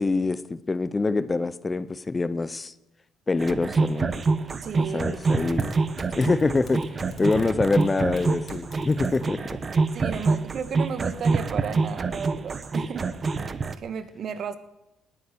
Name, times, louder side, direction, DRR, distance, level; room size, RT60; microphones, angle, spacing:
voice 1, 0.0-2.7 3.3-4.1 4.8-5.7 6.2-9.6, left 3 dB, 25° left, 16 dB, 0.7 m, -25 dB
sound 1, 3.4-13.7, right 4 dB, 35° right, 1.0 m, -26 dB
voice 2, 4.6-5.2 9.9-13.1 13.8-14.6, right 7 dB, 55° right, 12 dB, 1.4 m, -33 dB
Typing, 5.3-10.3, left 3 dB, 50° left, 3.7 m, -46 dB
19.0 x 8.8 x 6.9 m, 0.95 s
supercardioid pair, 80°, 0 cm